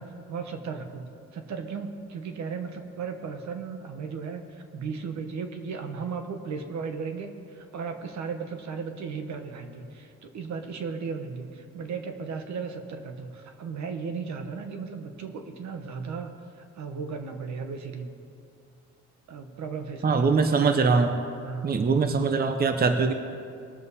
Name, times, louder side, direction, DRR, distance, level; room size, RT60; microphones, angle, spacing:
voice 1, 0.0-16.3 16.7-18.1 19.3-20.8 21.4-21.9, right 5 dB, 65° right, 6 dB, 1.2 m, -36 dB
voice 2, 20.0-21.2 21.6-23.1, right 4 dB, 30° right, 7 dB, 0.8 m, -22 dB
20.0 x 7.1 x 4.1 m, 2.4 s
cardioid pair, 90°, 30 cm